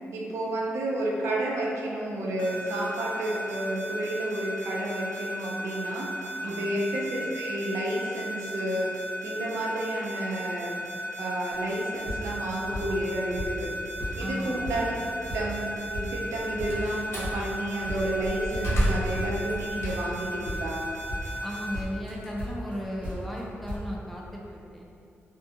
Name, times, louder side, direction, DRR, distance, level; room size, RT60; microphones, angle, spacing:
voice 1, 0.1-8.9 9.2-10.8 11.2-13.7 14.2-20.9, right 1 dB, 80° right, -3 dB, 0.4 m, -31 dB
sound 1, 2.4-21.6, right 1 dB, 25° left, 1.4 m, -38 dB
voice 2, 6.4-6.8 14.2-14.7 21.4-24.8, equal, ahead, -3 dB, 0.4 m, -36 dB
sound 2, 11.5-11.8 12.1-13.1 13.4-13.7 14.0-15.7 15.9-18.9 19.2-21.5 21.7-22.8 23.0-23.4 23.7-23.8, equal, 35° right, 0.8 m, -36 dB
Slam, 16.3-17.4 17.9-20.3 20.7-23.1, right 1 dB, 65° left, 0.6 m, -31 dB
2.6 x 2.4 x 2.5 m, 2.5 s
cardioid pair, 85°, 5 cm